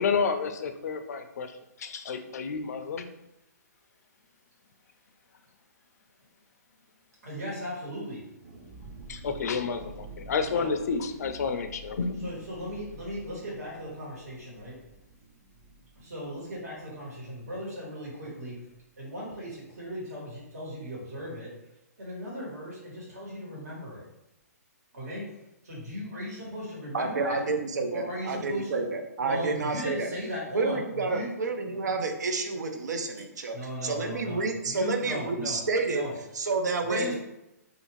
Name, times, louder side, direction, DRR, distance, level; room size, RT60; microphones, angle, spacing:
voice 1, 0.0-3.1 9.1-12.3, left 5 dB, 70° left, 8 dB, 0.4 m, -30 dB
voice 2, 7.2-8.3 10.5-10.7 12.2-14.8 15.9-18.6 19.0-21.6 22.0-24.0 24.9-25.3 25.6-27.4 27.9-28.8 29.2-31.3 33.5-36.1 36.9-37.1, equal, 65° right, -5 dB, 1.4 m, -37 dB
sound 1, 8.4-17.8 18.1-18.2 18.5-18.8, right 3 dB, 30° right, 0.4 m, -49 dB
voice 3, 26.9-30.1 30.5-36.0 36.4-37.1, right 3 dB, 90° right, 4 dB, 0.5 m, -29 dB
2.5 x 2.4 x 3.1 m, 0.89 s
hypercardioid pair, 160°, 9 cm